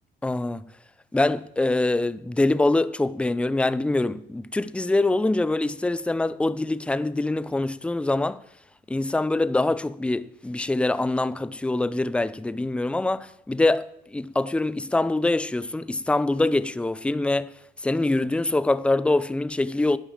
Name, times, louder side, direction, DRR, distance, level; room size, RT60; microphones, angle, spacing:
voice 1, 0.2-0.6 1.1-8.4 8.9-17.5 17.8-20.0, left 2 dB, 5° left, 0.5 m, -24 dB
10.5 x 8.8 x 7.5 m
cardioid pair, 110°, 17 cm